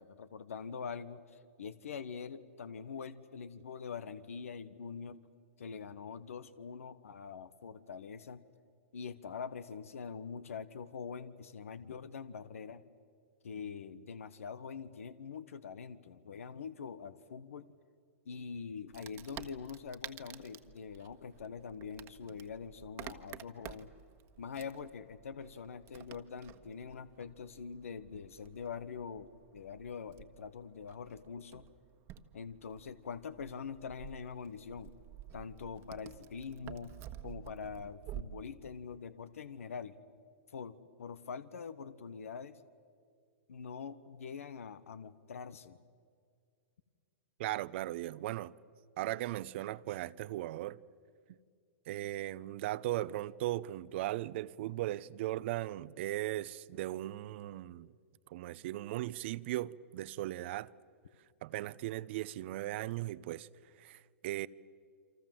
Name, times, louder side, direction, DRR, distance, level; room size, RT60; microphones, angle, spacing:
voice 1, 0.0-5.2 5.6-8.4 8.9-12.8 13.4-17.7 18.2-23.9 24.4-31.6 32.3-34.9 35.3-36.9 37.2-40.0 40.5-42.6 43.5-45.8, left 6 dB, 80° left, 1.2 m, -44 dB
Wood, 18.9-38.2, right 12 dB, 35° right, 1.5 m, -51 dB
voice 2, 47.4-48.5 49.0-50.8 51.9-57.9 58.3-60.7 61.4-63.5 63.8-64.5, right 15 dB, 55° right, 0.8 m, -37 dB
28.5 x 25.5 x 7.7 m
hypercardioid pair, 125°, 7 cm